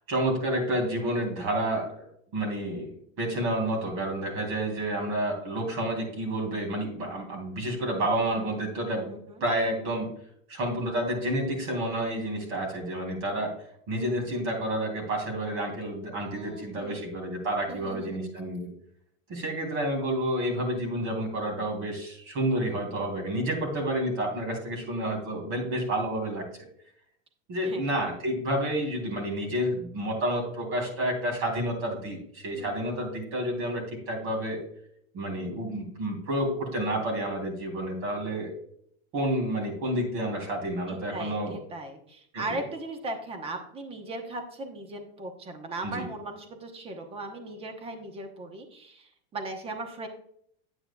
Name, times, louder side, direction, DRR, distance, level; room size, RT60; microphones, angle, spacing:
voice 1, 0.1-2.0 2.3-10.1 10.5-13.5 13.9-18.7 19.3-26.4 27.5-34.6 35.1-38.5 39.1-41.6 42.3-42.6 45.8-46.1, right 1 dB, 40° right, 2 dB, 3.3 m, -30 dB
voice 2, 9.0-9.4 16.3-17.0 17.7-18.3 27.6-27.9 32.6-33.0 40.9-50.1, right 2 dB, 15° right, 5 dB, 1.0 m, -38 dB
9.3 x 8.9 x 2.3 m, 0.67 s
supercardioid pair, 165°, 32 cm